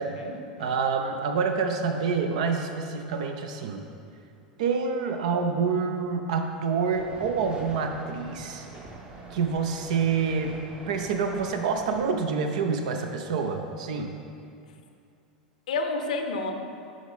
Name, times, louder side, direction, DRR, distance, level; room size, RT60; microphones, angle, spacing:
voice 1, 0.0-0.7 15.7-16.5, left 3 dB, 65° left, 6 dB, 0.7 m, -30 dB
voice 2, 0.6-3.8 4.6-8.7 9.3-10.6 10.9-14.1, right 5 dB, 55° right, 5 dB, 0.7 m, -27 dB
sound 1, 6.9-12.1, right 3 dB, 20° right, 0.9 m, -44 dB
11.0 x 5.0 x 3.6 m, 2.5 s
figure-of-eight pair, 85°, 4 cm